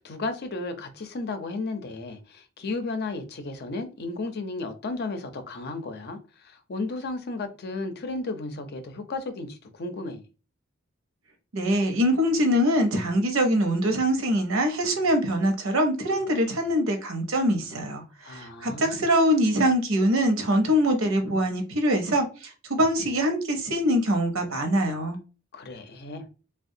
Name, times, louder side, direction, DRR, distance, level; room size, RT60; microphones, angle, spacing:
voice 1, 0.0-10.2 18.2-19.0 25.5-26.2, left 3 dB, 55° left, 0.5 m, -34 dB
voice 2, 11.5-25.2, equal, 75° right, 0.8 m, -23 dB
3.3 x 2.2 x 2.7 m
head